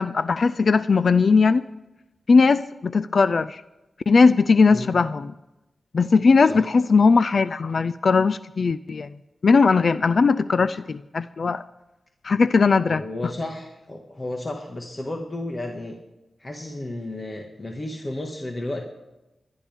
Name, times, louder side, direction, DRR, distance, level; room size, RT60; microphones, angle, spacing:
voice 1, 0.0-1.6 2.3-3.6 4.1-5.3 5.9-9.1 9.4-11.6 12.2-13.0, left 4 dB, 60° left, 15 dB, 0.4 m, -19 dB
voice 2, 12.9-16.0 16.4-18.9, left 1 dB, 35° left, 1 dB, 1.8 m, -32 dB
29.0 x 11.5 x 3.6 m, 0.98 s
cardioid pair, 55°, 0 cm